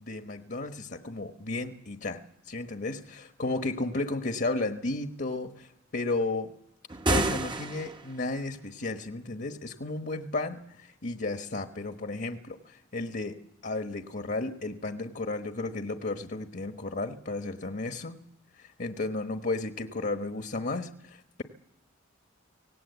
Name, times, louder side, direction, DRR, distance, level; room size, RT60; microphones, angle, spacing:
voice 1, 0.0-6.6 7.1-18.2 18.5-21.4, left 2 dB, 50° left, 7 dB, 1.2 m, -33 dB
sound 1, 6.9-8.2, right 2 dB, 25° right, 0.9 m, -29 dB
25.0 x 18.5 x 8.1 m, 0.77 s
head